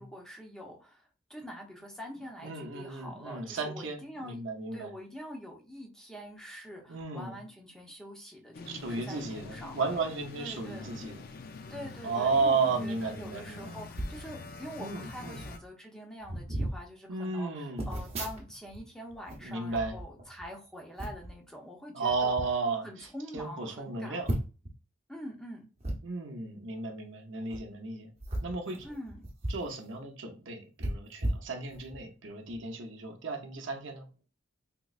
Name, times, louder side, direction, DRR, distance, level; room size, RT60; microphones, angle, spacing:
voice 1, 0.0-4.4 4.7-10.0 10.4-11.0 11.7-22.3 22.8-24.2 25.1-25.7 28.8-29.2, equal, 5° left, 0.6 m, -45 dB
voice 2, 2.4-4.9 6.9-7.3 8.7-11.2 12.0-13.7 14.8-15.4 17.1-17.9 19.4-19.9 21.9-23.1 23.3-24.3 26.0-28.1 28.4-28.9 29.5-34.0, right 4 dB, 65° right, 0.7 m, -33 dB
sound 1, 8.5-15.6, left 4 dB, 45° left, 0.4 m, -45 dB
sound 2, 13.9-14.2 15.1-15.2 15.4-15.6 16.2-16.8 17.8-18.8 19.1-20.5 21.0-21.3 22.1-22.5 23.0-23.1 23.4-23.5 24.2-24.7 25.8-26.0 27.4-27.6 28.2-29.7 30.0-30.1 30.8-32.0 32.5-32.6, right 1 dB, 30° right, 0.8 m, -35 dB
3.6 x 3.0 x 2.4 m
head